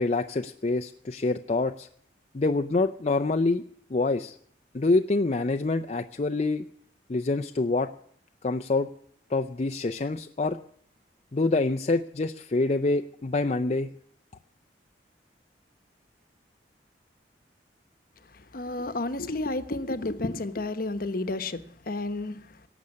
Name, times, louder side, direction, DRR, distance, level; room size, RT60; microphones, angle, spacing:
voice 1, 0.0-1.9 2.3-3.6 3.9-4.4 4.7-6.7 7.1-7.9 8.4-8.9 9.3-10.6 11.3-13.9, left 3 dB, 40° left, 0.5 m, -26 dB
voice 2, 18.5-22.4, left 2 dB, 55° left, 1.0 m, -31 dB
18.0 x 7.1 x 9.7 m
head